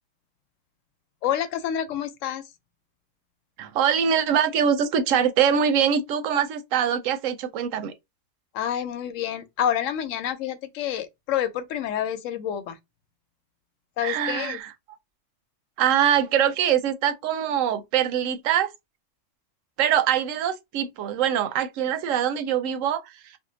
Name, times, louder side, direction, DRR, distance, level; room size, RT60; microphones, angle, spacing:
voice 1, 1.2-2.4 8.5-12.8 14.0-14.6, left 10 dB, 85° left, 1.0 m, -28 dB
voice 2, 3.6-7.9 14.0-14.7 15.8-18.7 19.8-23.4, right 8 dB, 90° right, 1.0 m, -23 dB
2.7 x 2.0 x 3.8 m
omnidirectional pair, 1.3 m